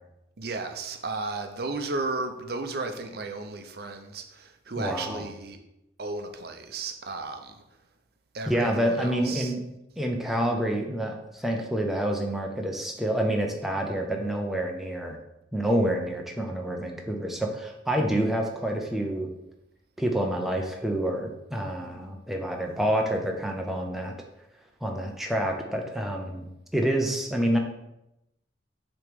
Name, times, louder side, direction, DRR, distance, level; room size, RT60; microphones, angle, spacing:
voice 1, 0.4-5.6 6.0-7.6 8.3-9.5, right 3 dB, 55° right, 6 dB, 0.6 m, -34 dB
voice 2, 4.8-5.2 8.5-9.6 10.0-15.2 15.5-19.3 20.0-24.1 24.8-27.6, right 1 dB, ahead, 1 dB, 0.5 m, -28 dB
6.6 x 3.0 x 5.1 m, 0.88 s
head